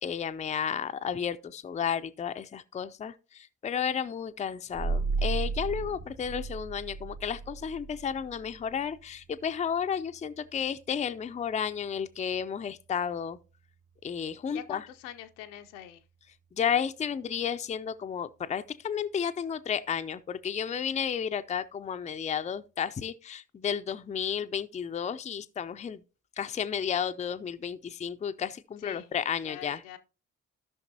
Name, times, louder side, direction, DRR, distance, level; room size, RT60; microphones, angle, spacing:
voice 1, 0.0-13.4 14.0-14.8 16.5-26.0 26.4-29.8, left 7 dB, 20° left, 0.5 m, -32 dB
sound 1, 4.7-16.0, right 4 dB, 65° right, 1.7 m, -38 dB
voice 2, 14.5-16.0 28.8-29.2 29.4-30.0, left 11 dB, 70° left, 0.7 m, -44 dB
15.5 x 5.8 x 2.7 m
figure-of-eight pair, 45°, 37 cm